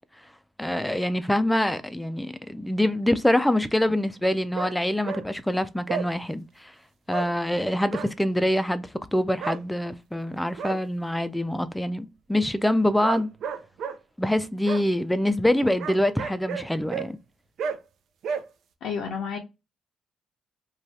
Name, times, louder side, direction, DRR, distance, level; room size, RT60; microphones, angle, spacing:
voice 1, 0.6-6.7 7.1-13.3 14.2-17.2, left 1 dB, 5° left, 0.3 m, -25 dB
sound 1, 4.2-4.7 5.0-5.2 5.9-6.1 7.1-7.3 7.9-8.1 9.4-9.6 10.3-10.8 13.0-14.0 14.6-14.8 15.8-17.1 17.6-17.8 18.2-18.4, right 6 dB, 70° right, 0.4 m, -32 dB
voice 2, 18.8-19.4, left 6 dB, 80° left, 0.5 m, -30 dB
2.7 x 2.3 x 3.2 m
cardioid pair, 90°, 0 cm